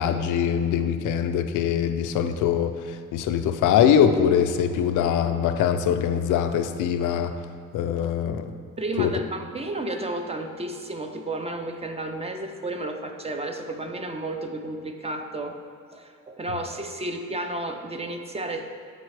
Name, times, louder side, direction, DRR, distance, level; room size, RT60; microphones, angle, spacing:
voice 1, 0.0-2.7 3.1-7.4 7.7-8.5 9.0-9.1, left 8 dB, 80° left, 8 dB, 0.4 m, -22 dB
voice 2, 8.8-15.6 15.9-18.7, right 2 dB, 20° right, 5 dB, 0.5 m, -32 dB
8.2 x 4.0 x 3.2 m, 2.2 s
cardioid pair, 90°, 30 cm